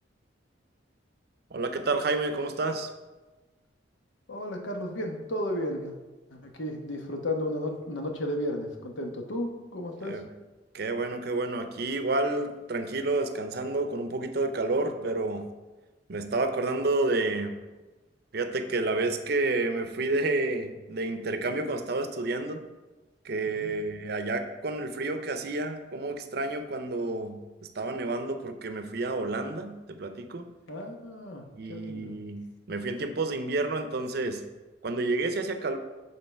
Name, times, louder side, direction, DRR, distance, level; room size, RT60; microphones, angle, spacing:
voice 1, 1.5-2.9 10.1-10.2 10.7-15.5 16.1-17.6 18.3-22.6 23.2-30.5 31.6-34.4 34.8-35.8, right 2 dB, 55° right, 8 dB, 0.6 m, -30 dB
voice 2, 4.3-5.9 6.3-10.2 23.6-23.8 30.7-32.2, left 1 dB, 85° left, 3 dB, 1.0 m, -33 dB
7.8 x 3.8 x 4.5 m, 1.2 s
head